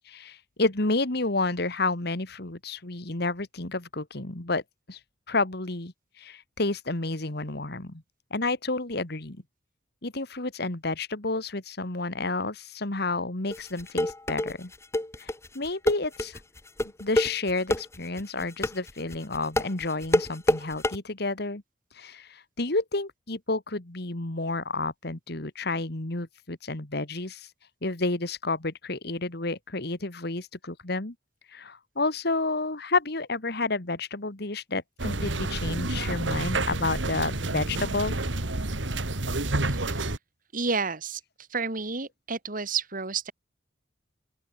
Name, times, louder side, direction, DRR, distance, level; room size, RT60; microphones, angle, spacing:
voice 1, 0.1-4.6 4.9-5.0 5.3-8.0 8.3-9.4 10.0-14.7 15.2-16.4 17.0-21.6 22.0-27.5 27.8-31.1 31.5-38.1, left 3 dB, 60° left, 2.2 m, -30 dB
sound 1, 13.5-21.0, left 1 dB, 15° left, 1.2 m, -27 dB
sound 2, 35.0-40.2, right 2 dB, 85° right, 2.4 m, -29 dB
voice 2, 39.7-40.1 40.5-41.2 41.5-43.3, right 5 dB, 45° right, 2.6 m, -31 dB
open air
head